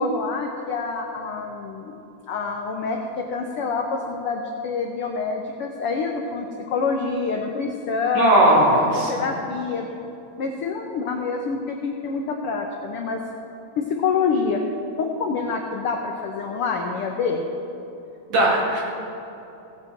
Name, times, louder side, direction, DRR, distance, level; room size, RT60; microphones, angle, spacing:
voice 1, 0.0-2.0 2.3-8.4 8.9-9.9 10.4-13.2 13.8-14.6 15.0-17.4, left 4 dB, 70° left, 2 dB, 1.3 m, -26 dB
voice 2, 8.1-9.2 18.3-18.8, right 1 dB, 55° right, -4 dB, 3.4 m, -18 dB
17.0 x 9.0 x 4.5 m, 2.9 s
omnidirectional pair, 3.5 m